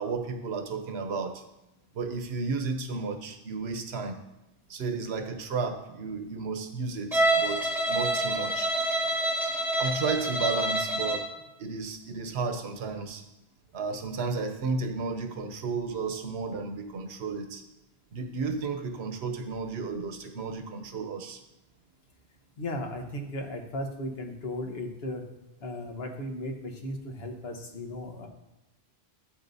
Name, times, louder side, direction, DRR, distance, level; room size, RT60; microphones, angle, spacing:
voice 1, 0.0-1.4 1.9-4.2 4.7-8.7 9.8-11.3 11.6-13.2 13.7-17.6 18.1-21.4, right 4 dB, 75° right, 5 dB, 1.1 m, -33 dB
Bowed string instrument, 7.1-11.3, right 1 dB, ahead, 1.2 m, -27 dB
voice 2, 22.6-25.2 25.6-28.3, left 1 dB, 70° left, 3 dB, 1.4 m, -36 dB
11.5 x 8.0 x 2.7 m, 0.96 s
omnidirectional pair, 1.1 m